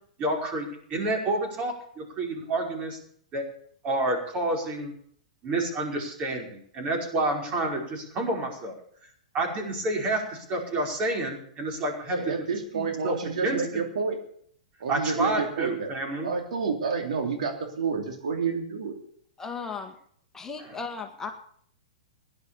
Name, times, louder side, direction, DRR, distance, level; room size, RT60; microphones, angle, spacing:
voice 1, 0.2-3.0 3.3-3.4 3.8-4.9 5.4-8.7 9.3-12.3 12.7-13.2 13.4-13.8 14.9-16.3 20.6-20.8, right 2 dB, 30° right, 2 dB, 5.2 m, -29 dB
voice 2, 12.1-14.2 14.8-16.0 16.2-18.9, right 5 dB, 70° right, 3 dB, 3.0 m, -29 dB
voice 3, 19.4-19.9 20.3-21.3, left 5 dB, 15° left, 3 dB, 1.7 m, -36 dB
16.5 x 11.0 x 7.0 m, 0.64 s
hypercardioid pair, 115°, 4 cm